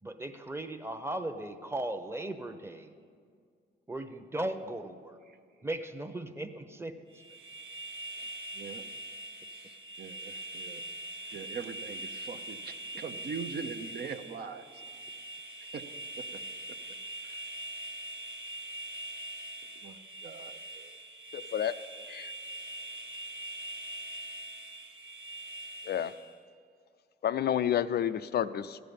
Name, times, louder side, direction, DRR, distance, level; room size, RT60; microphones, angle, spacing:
voice 1, 0.0-2.9 3.9-5.2 5.6-7.0 12.9-13.0 16.8-16.9, right 1 dB, 10° right, 8 dB, 0.9 m, -37 dB
sound 1, 7.1-26.4, right 1 dB, 85° right, 1.3 m, -43 dB
voice 2, 8.2-8.8 10.0-10.8 11.3-14.7 15.7-15.8 17.2-17.4 19.8-20.9, right 5 dB, 55° right, 7 dB, 0.8 m, -42 dB
voice 3, 21.3-21.7 22.1-22.3 25.9-26.1 27.2-28.8, left 10 dB, 55° left, 12 dB, 0.4 m, -30 dB
14.5 x 10.0 x 5.4 m, 2.1 s
cardioid pair, 90°, 20 cm